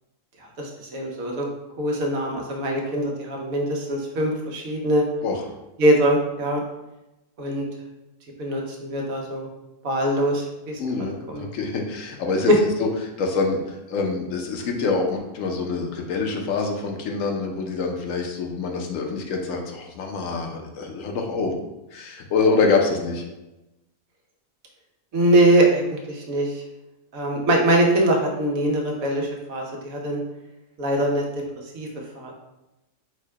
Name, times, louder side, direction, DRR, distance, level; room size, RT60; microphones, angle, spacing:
voice 1, 0.6-1.5 1.8-5.0 5.8-6.6 7.4-7.6 8.4-9.5 9.8-10.8 11.3-11.4 25.1-26.5 27.1-30.2 30.8-31.2 31.7-31.9 32.1-32.3, right 1 dB, 90° right, 0 dB, 1.3 m, -22 dB
voice 2, 10.8-12.5 12.8-21.5 21.9-23.2, left 4 dB, 75° left, 2 dB, 1.1 m, -25 dB
4.6 x 2.1 x 4.6 m, 0.99 s
omnidirectional pair, 1.4 m